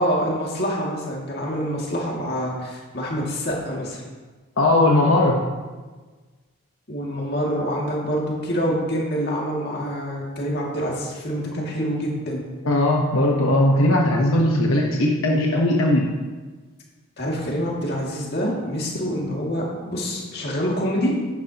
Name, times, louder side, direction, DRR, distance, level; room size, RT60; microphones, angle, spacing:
voice 1, 0.0-4.0 6.9-12.4 17.2-21.1, equal, 50° left, -3 dB, 2.2 m, -26 dB
voice 2, 4.6-5.4 12.6-16.0, left 1 dB, 80° left, -1 dB, 1.0 m, -18 dB
11.0 x 10.0 x 2.9 m, 1.4 s
head